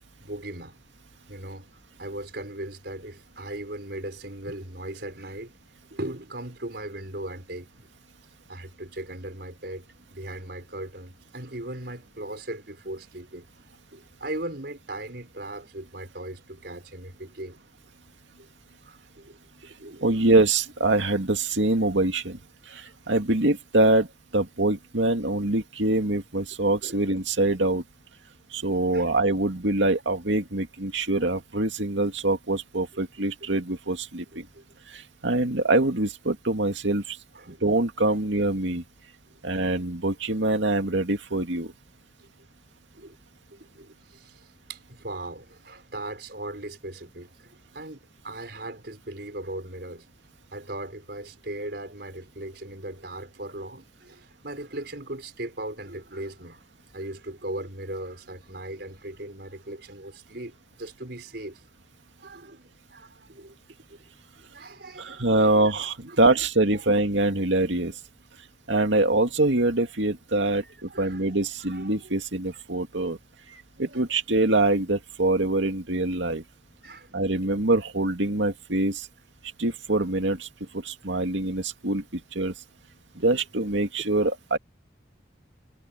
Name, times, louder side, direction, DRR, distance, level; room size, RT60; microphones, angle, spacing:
voice 1, 0.2-0.8 1.3-1.7 2.0-5.5 5.9-7.9 8.5-9.8 10.1-13.5 13.9-17.6 18.4-18.5 18.8-19.4 19.8-20.1 26.8-27.0 28.9-29.1 34.5-34.6 37.3-37.6 42.2-42.3 42.9-43.2 43.5-50.1 50.5-61.6 62.2-63.6 63.9-64.0 64.4-65.7 66.1-66.4 66.7-66.9 68.9-69.0 70.5-72.1 73.8-74.1 76.8-77.1, right 1 dB, 55° right, 5.3 m, -38 dB
voice 2, 20.0-22.4 22.7-24.1 24.3-27.8 28.5-34.5 34.9-37.2 37.5-38.8 39.4-41.7 65.0-68.0 68.7-73.2 73.5-76.4 77.1-79.1 79.6-80.5 80.7-82.5 83.2-84.6, right 2 dB, 75° right, 2.4 m, -24 dB
head